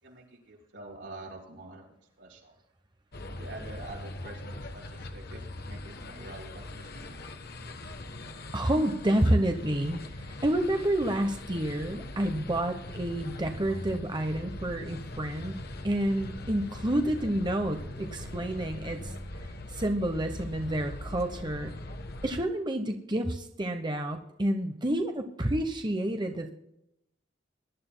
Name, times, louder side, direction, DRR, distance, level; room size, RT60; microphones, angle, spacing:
voice 1, 0.0-2.6 3.3-7.2, right 2 dB, 85° right, -2 dB, 4.4 m, -46 dB
sound 1, 3.1-22.4, left 1 dB, 60° left, 1.1 m, -41 dB
voice 2, 8.5-10.0 10.4-15.6 15.8-19.1 19.7-21.7 22.2-26.5, right 1 dB, 25° right, 5 dB, 0.9 m, -29 dB
21.5 x 11.0 x 2.2 m, 0.81 s
head